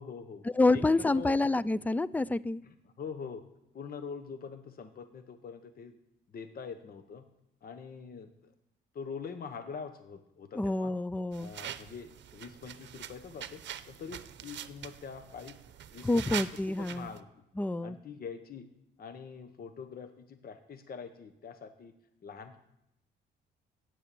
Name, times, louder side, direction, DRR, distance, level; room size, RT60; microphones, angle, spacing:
voice 1, 0.0-1.4 2.6-3.4 3.7-5.9 6.3-7.3 7.6-8.5 8.9-10.9 11.4-13.6 13.9-15.6 15.9-16.4 16.7-17.3 17.8-18.7 19.0-21.9 22.2-22.6, left 6 dB, 50° left, 9 dB, 1.0 m, -44 dB
voice 2, 0.6-2.6 10.6-11.5 16.0-17.1 17.6-18.0, left 2 dB, 10° left, 19 dB, 0.3 m, -28 dB
sound 1, 11.3-17.2, right 10 dB, 65° right, 0.7 m, -43 dB
9.8 x 8.9 x 6.9 m, 0.85 s
cardioid pair, 90°, 20 cm